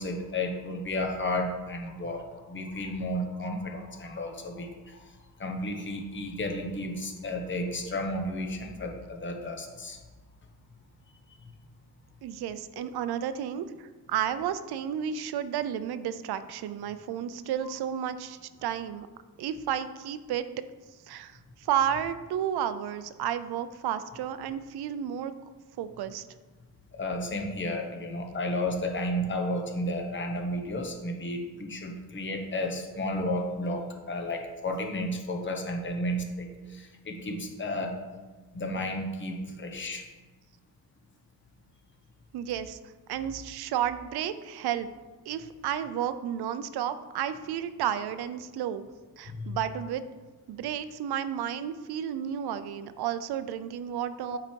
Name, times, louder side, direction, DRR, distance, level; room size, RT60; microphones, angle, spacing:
voice 1, 0.0-5.0 5.4-10.0 26.9-36.5 36.7-37.9 38.5-40.0 49.3-49.6 54.3-54.4, left 1 dB, 30° left, 3 dB, 1.0 m, -32 dB
voice 2, 12.2-19.1 19.4-20.5 21.1-25.3 25.8-26.2 42.3-42.8 43.1-44.9 45.3-48.8 49.2-50.0 50.5-54.4, right 9 dB, 85° right, 12 dB, 0.6 m, -32 dB
8.9 x 4.9 x 4.5 m, 1.3 s
wide cardioid pair, 155°, 37 cm